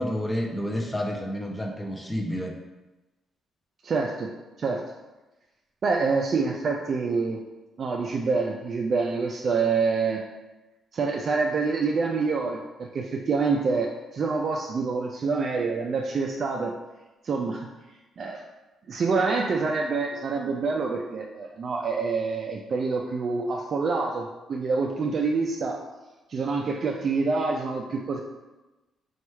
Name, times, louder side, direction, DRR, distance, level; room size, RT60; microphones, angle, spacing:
voice 1, 0.0-2.5, equal, 15° left, 1 dB, 0.6 m, -29 dB
voice 2, 3.8-4.3 4.6-4.8 5.8-7.4 7.8-10.2 10.9-12.6 12.9-16.7 17.2-17.7 18.2-18.4 18.9-25.8 26.3-28.2, right 4 dB, 50° right, 1 dB, 0.3 m, -26 dB
3.0 x 2.3 x 4.3 m, 1.1 s
cardioid pair, 90°, 0 cm